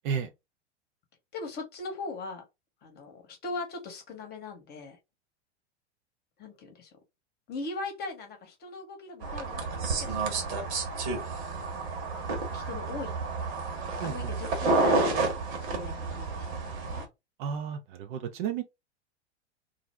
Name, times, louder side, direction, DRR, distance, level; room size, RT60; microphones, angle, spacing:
voice 1, 1.3-2.4 2.8-5.0 6.4-6.9 7.5-10.7 12.5-13.5 14.0-15.3 15.7-17.1, left 3 dB, 25° left, 0.9 m, -40 dB
sound 1, 9.2-17.0, right 3 dB, 65° right, 1.1 m, -30 dB
voice 2, 17.4-18.6, right 7 dB, 45° right, 0.4 m, -32 dB
2.4 x 2.0 x 3.2 m
figure-of-eight pair, 95°, 35 cm